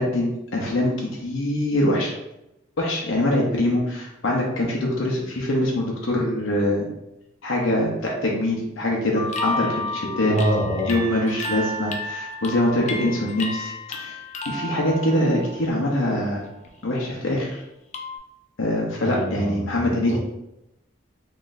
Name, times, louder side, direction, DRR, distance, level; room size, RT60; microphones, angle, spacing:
voice 1, 0.0-2.1 2.8-6.8 7.4-10.4 10.9-13.7 14.0-14.2 14.5-16.4 16.8-17.6 18.6-20.2, left 1 dB, 75° left, -2 dB, 0.7 m, -23 dB
sound 1, 9.1-16.0 16.4-16.8 17.9-18.2, left 2 dB, 35° left, 0.3 m, -31 dB
voice 2, 10.3-10.9 19.0-20.2, equal, 35° right, -5 dB, 1.1 m, -26 dB
3.8 x 3.1 x 2.5 m, 0.88 s
head